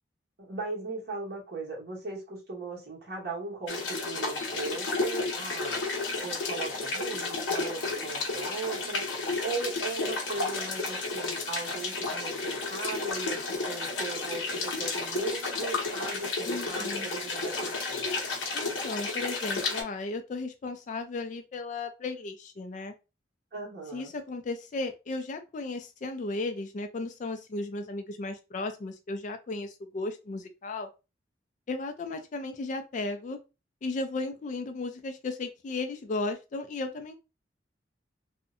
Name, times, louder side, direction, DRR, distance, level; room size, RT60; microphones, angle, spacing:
voice 1, 0.4-5.8 6.2-9.1 9.4-18.1 23.5-24.1, right 3 dB, 60° right, 1.2 m, -38 dB
sound 1, 3.7-19.8, left 3 dB, 85° left, 0.7 m, -32 dB
voice 2, 16.5-17.1 18.5-22.9 23.9-30.9 31.7-33.4 33.8-37.1, left 3 dB, 40° left, 0.3 m, -35 dB
2.6 x 2.1 x 2.5 m
head